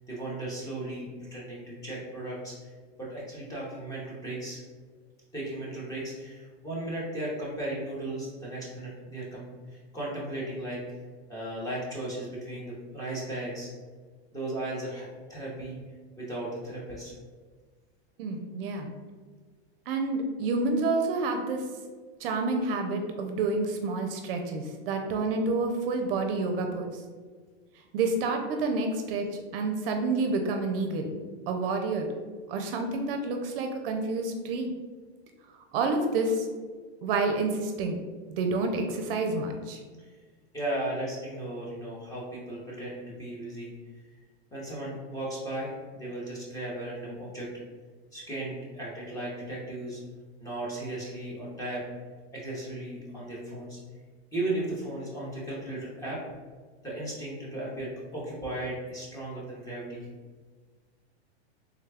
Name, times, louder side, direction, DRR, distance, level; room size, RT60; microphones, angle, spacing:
voice 1, 0.1-2.7 3.0-4.6 5.3-10.8 11.3-13.7 14.3-15.8 16.2-17.1 40.0-40.1 40.5-43.7 44.5-47.5 48.1-50.0 50.4-51.8 52.3-53.8 54.3-56.2 56.8-60.1, right 1 dB, 10° left, -5 dB, 0.8 m, -36 dB
voice 2, 18.2-18.9 19.9-21.6 22.2-26.9 27.9-31.2 31.5-32.1 32.5-34.7 35.7-36.5 37.0-38.0 38.3-39.8, right 3 dB, 60° right, 4 dB, 0.5 m, -29 dB
3.5 x 2.3 x 3.3 m, 1.5 s
supercardioid pair, 150°, 33 cm